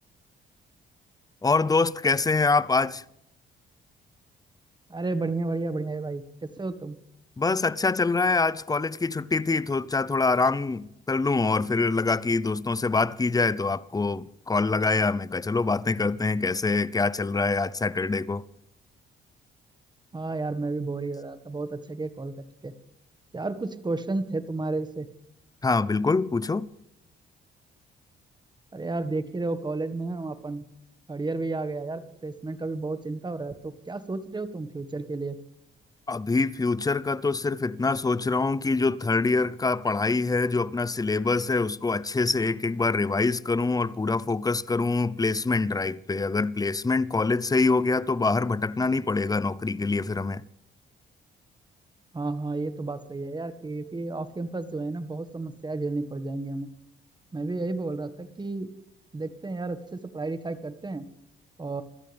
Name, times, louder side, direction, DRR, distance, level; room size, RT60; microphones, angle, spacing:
voice 1, 1.4-3.0 7.4-18.4 25.6-26.7 36.1-50.4, left 3 dB, 20° left, 0.7 m, -25 dB
voice 2, 4.9-7.0 20.1-22.7 23.3-25.1 28.7-30.6 31.1-35.4 52.1-56.7 57.3-58.7 59.1-61.1 61.6-61.8, right 3 dB, 20° right, 1.7 m, -32 dB
26.0 x 14.0 x 3.5 m
cardioid pair, 90°, 20 cm